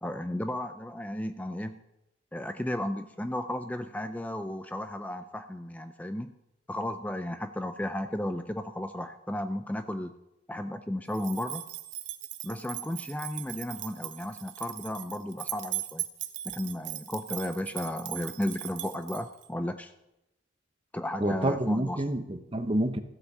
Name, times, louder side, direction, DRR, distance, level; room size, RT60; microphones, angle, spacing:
voice 1, 0.0-1.8 2.3-6.3 6.7-10.1 10.5-11.6 12.4-16.0 16.4-19.9 20.9-22.0, left 1 dB, 10° left, 8 dB, 0.4 m, -34 dB
sound 1, 11.1-19.5, right 14 dB, 70° right, 1.0 m, -39 dB
voice 2, 21.2-23.0, right 1 dB, 30° right, 9 dB, 0.8 m, -28 dB
15.0 x 8.3 x 6.7 m, 0.90 s
head